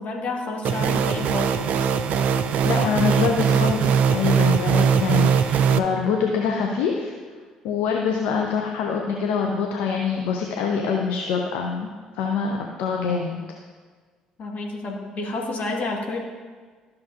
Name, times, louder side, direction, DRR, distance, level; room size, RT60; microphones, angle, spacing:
voice 1, 0.0-1.7 14.4-16.2, left 2 dB, 50° left, 0 dB, 1.6 m, -30 dB
sound 1, 0.6-5.8, right 7 dB, 55° right, 0.4 m, -21 dB
voice 2, 2.6-7.1 7.6-11.9 12.2-13.4, left 6 dB, 65° left, 1 dB, 0.6 m, -25 dB
12.5 x 6.1 x 2.5 m, 1.5 s
figure-of-eight pair, 50°, 3 cm